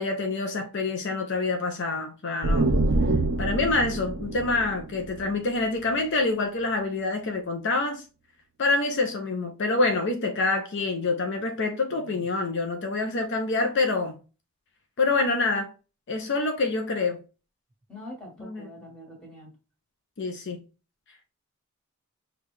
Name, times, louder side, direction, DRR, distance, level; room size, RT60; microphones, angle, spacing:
voice 1, 0.0-2.7 3.4-8.0 8.6-14.2 15.0-15.7 16.1-17.2 18.4-18.7 20.2-20.6, left 3 dB, 55° left, 0.5 m, -26 dB
sound 1, 2.4-6.0, right 2 dB, 60° right, 0.5 m, -26 dB
voice 2, 11.9-12.2 17.9-19.5, left 1 dB, 5° left, 1.6 m, -44 dB
5.4 x 2.3 x 3.2 m
head